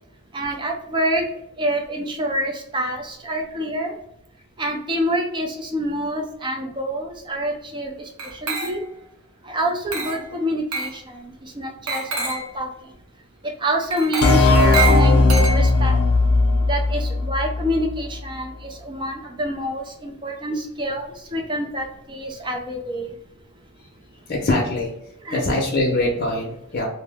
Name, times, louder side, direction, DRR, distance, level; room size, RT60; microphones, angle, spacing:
voice 1, 0.3-1.2 1.6-3.9 4.6-7.9 8.4-8.8 9.5-12.7 13.6-16.0 16.7-23.1 25.2-25.5, right 1 dB, 20° right, 2 dB, 0.5 m, -27 dB
Glass, 8.2-9.0 9.9-10.3 10.7-11.0 11.9-12.5 13.9-15.9, right 4 dB, 80° right, 0.7 m, -27 dB
sound 1, 14.2-17.8, left 3 dB, 85° left, 0.5 m, -17 dB
voice 2, 24.3-24.9 25.3-26.9, left 2 dB, 45° left, -2 dB, 0.6 m, -22 dB
2.6 x 2.0 x 3.4 m, 0.78 s
head